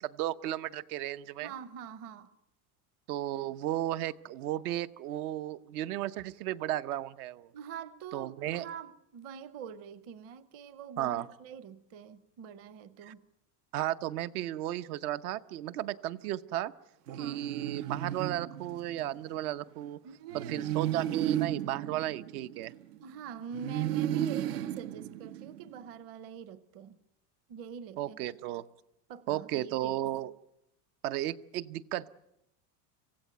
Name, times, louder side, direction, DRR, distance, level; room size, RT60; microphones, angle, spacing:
voice 1, 0.0-1.5 3.1-7.5 8.1-8.7 11.0-11.3 13.0-13.1 13.7-16.7 17.1-20.0 20.3-22.7 28.0-28.6 29.3-30.3 31.0-32.1, right 13 dB, 70° right, 1.0 m, -34 dB
voice 2, 1.4-2.3 7.5-13.2 17.1-17.4 20.0-20.8 23.0-27.0 27.5-28.2 29.1-30.0, right 7 dB, 30° right, 0.8 m, -45 dB
sound 1, 17.1-19.2 20.3-23.0 23.5-25.8, right 12 dB, 90° right, 1.4 m, -34 dB
26.5 x 16.0 x 9.2 m
supercardioid pair, 180°, 46 cm